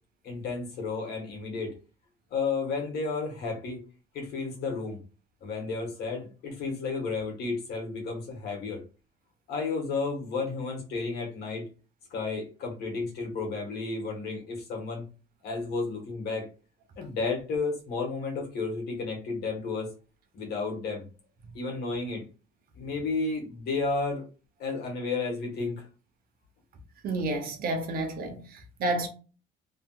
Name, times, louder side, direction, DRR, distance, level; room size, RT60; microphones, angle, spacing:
voice 1, 0.2-1.7 2.3-3.8 4.1-5.0 5.4-8.8 9.5-11.6 12.1-15.0 15.4-16.5 17.0-19.9 20.3-21.0 21.5-22.2 22.7-24.2 24.6-25.8, left 4 dB, 75° left, 1.4 m, -32 dB
voice 2, 27.0-29.1, right 2 dB, 60° right, 0.9 m, -30 dB
3.2 x 2.8 x 2.4 m
cardioid pair, 110°, 17 cm